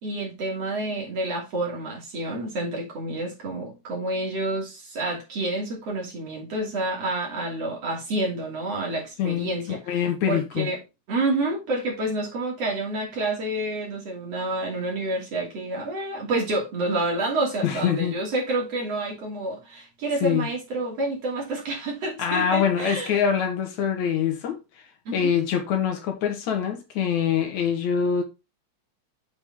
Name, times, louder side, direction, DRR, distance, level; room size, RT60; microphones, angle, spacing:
voice 1, 0.0-10.8 11.1-23.2 25.1-25.3, right 2 dB, 55° right, 3.9 m, -29 dB
voice 2, 9.2-10.7 17.6-18.2 20.2-20.5 22.2-24.6 25.1-28.2, left 8 dB, 75° left, 2.7 m, -24 dB
7.9 x 5.3 x 3.7 m
omnidirectional pair, 3.3 m